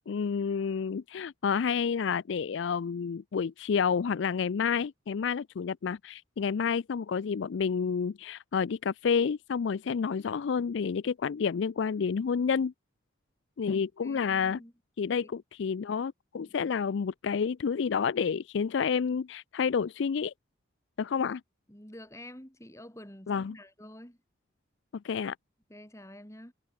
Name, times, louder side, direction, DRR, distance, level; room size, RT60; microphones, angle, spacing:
voice 1, 0.1-12.7 13.6-14.6 15.0-20.3 21.0-21.4 23.3-23.6 25.0-25.4, left 6 dB, 65° left, 0.4 m, -29 dB
voice 2, 13.7-14.7 15.2-15.3 21.7-24.2 25.7-26.5, left 1 dB, 15° left, 4.3 m, -48 dB
head